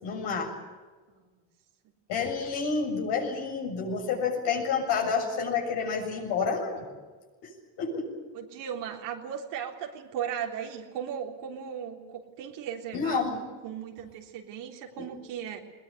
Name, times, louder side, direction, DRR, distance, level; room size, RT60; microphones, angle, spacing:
voice 1, 0.0-0.5 2.1-6.9 7.4-7.5 7.8-8.1 12.9-13.4 15.0-15.1, left 5 dB, 80° left, 1 dB, 7.3 m, -29 dB
voice 2, 1.1-1.4 8.3-15.6, right 8 dB, 90° right, 2 dB, 3.8 m, -37 dB
21.0 x 20.5 x 9.3 m, 1.4 s
cardioid pair, 85°, 41 cm